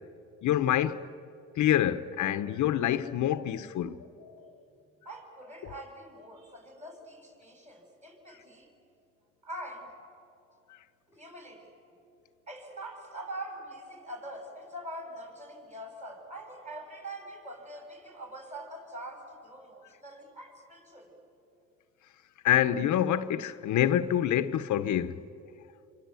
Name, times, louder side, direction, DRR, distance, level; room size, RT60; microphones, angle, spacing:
voice 1, 0.4-1.0 1.6-4.5 5.6-5.7 10.7-10.8 22.4-25.2, left 11 dB, 75° left, 0.9 m, -27 dB
voice 2, 5.0-8.7 9.4-9.9 11.1-11.7 12.5-21.1, right 1 dB, 25° right, 7.1 m, -44 dB
28.0 x 25.5 x 8.3 m
cardioid pair, 90°, 30 cm